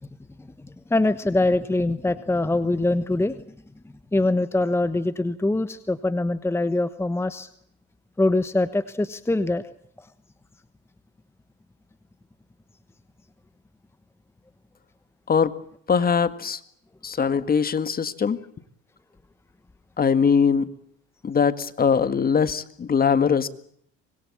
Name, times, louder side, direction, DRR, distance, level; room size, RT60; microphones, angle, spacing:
voice 1, 0.9-3.4 4.1-7.5 8.2-9.6 10.0-10.1, left 2 dB, 10° left, 12 dB, 1.2 m, -23 dB
voice 2, 15.9-16.6 17.0-18.4 20.0-20.7 21.2-23.5, left 6 dB, 30° left, 12 dB, 1.8 m, -21 dB
25.5 x 21.5 x 8.6 m, 0.67 s
supercardioid pair, 100°, 29 cm